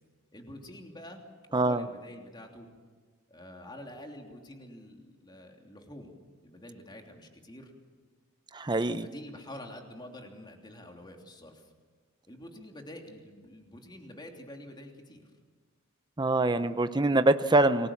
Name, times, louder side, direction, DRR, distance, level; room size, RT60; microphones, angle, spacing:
voice 1, 0.3-1.2 1.5-2.7 3.3-6.1 6.4-7.7 9.0-11.7 12.3-15.3, left 1 dB, 20° left, 2 dB, 3.1 m, -47 dB
voice 2, 1.5-1.8 8.5-9.1 16.2-17.9, right 2 dB, 20° right, 10 dB, 0.7 m, -24 dB
29.5 x 21.0 x 7.3 m, 1.4 s
head